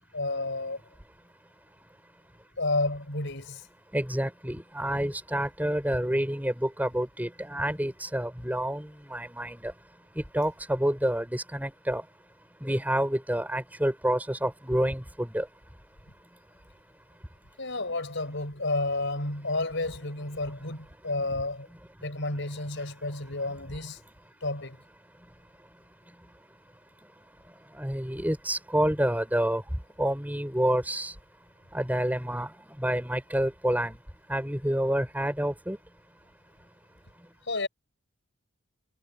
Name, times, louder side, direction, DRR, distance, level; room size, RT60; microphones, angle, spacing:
voice 1, 0.1-0.8 2.6-3.6 17.6-21.7 22.0-24.0 24.4-24.8 37.5-37.7, left 2 dB, 60° left, 6.0 m, -31 dB
voice 2, 3.9-9.8 10.1-12.1 12.6-15.5 22.0-22.1 23.0-23.1 23.5-23.8 25.2-25.7 26.1-26.4 27.0-27.1 27.4-31.2 31.7-34.0 34.3-35.8 37.2-37.3, right 1 dB, 10° right, 6.7 m, -29 dB
head